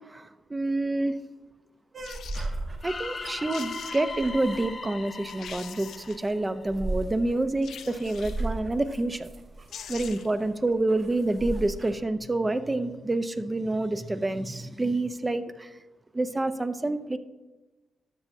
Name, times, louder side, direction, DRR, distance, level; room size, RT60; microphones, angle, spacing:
voice 1, 0.1-1.2 2.8-9.3 9.9-15.7 16.1-17.2, right 2 dB, 25° right, 11 dB, 0.6 m, -28 dB
sound 1, 1.9-11.9, right 2 dB, 50° right, 1.5 m, -37 dB
sound 2, 2.0-2.5 3.2-3.3 3.5-4.3 4.9-5.0 5.3-6.3 7.6-8.5 9.4-9.5 9.7-10.4 10.7-10.8, left 8 dB, 75° left, 0.4 m, -43 dB
sound 3, 2.8-6.9, left 4 dB, 45° left, 0.8 m, -39 dB
12.5 x 7.0 x 2.7 m, 1.1 s
supercardioid pair, 50°, 0 cm